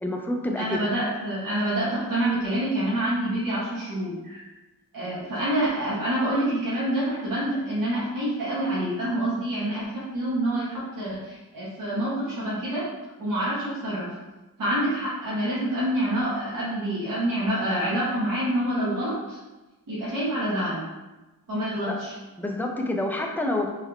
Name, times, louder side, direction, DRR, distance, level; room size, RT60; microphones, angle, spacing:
voice 1, 0.0-0.8 21.9-22.0 22.4-23.7, left 1 dB, 5° left, 1 dB, 0.3 m, -27 dB
voice 2, 0.6-4.4 4.9-12.8 13.2-14.1 14.6-19.4 19.9-20.8 21.5-22.1, right 1 dB, 60° right, -9 dB, 1.2 m, -27 dB
3.5 x 3.1 x 2.3 m, 1.1 s
wide cardioid pair, 115°, 37 cm